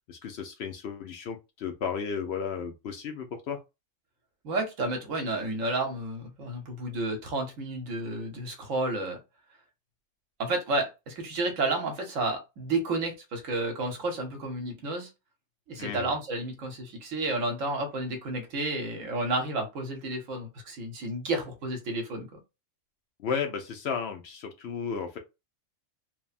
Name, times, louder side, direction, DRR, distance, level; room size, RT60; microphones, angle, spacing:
voice 1, 0.1-3.6 15.8-16.1 23.2-25.2, left 6 dB, 65° left, 0.7 m, -34 dB
voice 2, 4.4-9.2 10.4-15.1 15.7-22.4, right 2 dB, 80° right, 1.2 m, -31 dB
3.3 x 2.1 x 2.4 m
omnidirectional pair, 1.4 m